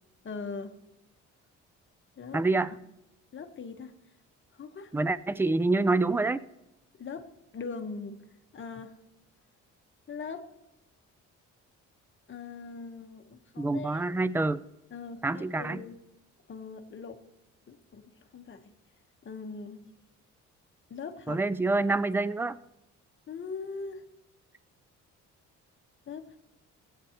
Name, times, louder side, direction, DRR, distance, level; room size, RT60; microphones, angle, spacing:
voice 1, 0.2-0.8 2.2-2.4 3.3-3.9 4.5-5.0 7.0-7.3 7.5-8.2 8.5-9.0 10.1-10.4 12.3-14.0 14.9-16.0 16.5-17.2 17.7-18.7 19.2-19.9 20.9-21.4 23.3-24.0 26.1-26.4, left 5 dB, 40° left, 7 dB, 1.1 m, -41 dB
voice 2, 2.3-2.7 4.9-6.4 13.6-14.6 15.2-15.9 21.3-22.6, right 2 dB, 10° right, 16 dB, 0.3 m, -27 dB
16.0 x 8.5 x 2.9 m, 0.91 s
cardioid pair, 90°, 30 cm